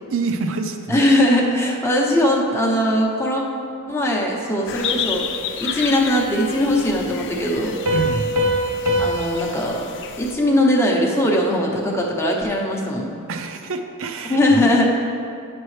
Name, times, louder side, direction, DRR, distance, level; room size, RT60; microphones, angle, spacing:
voice 1, 0.1-1.0 7.9-8.3 13.3-14.6, right 3 dB, 65° right, 7 dB, 0.5 m, -26 dB
voice 2, 0.9-3.4 3.9-5.2 5.6-7.8 9.0-9.8 10.2-13.1 14.3-14.9, left 1 dB, 10° left, -2 dB, 0.8 m, -20 dB
sound 1, 4.7-10.3, left 7 dB, 55° left, 0.4 m, -31 dB
Piano, 7.9-11.3, equal, 85° right, 1.0 m, -24 dB
9.4 x 6.1 x 3.2 m, 2.5 s
head